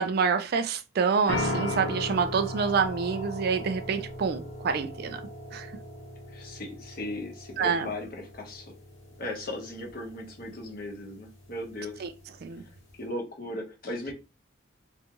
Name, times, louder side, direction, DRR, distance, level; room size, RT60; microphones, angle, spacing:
voice 1, 0.0-5.2 5.5-5.7 7.6-7.9 12.0-12.1 12.4-12.6, right 5 dB, 50° right, 0.3 m, -27 dB
sound 1, 1.3-13.0, left 1 dB, 80° left, 0.9 m, -38 dB
voice 2, 6.3-8.7 9.2-12.1 12.9-14.1, left 1 dB, 50° left, 0.8 m, -37 dB
2.6 x 2.3 x 2.8 m
head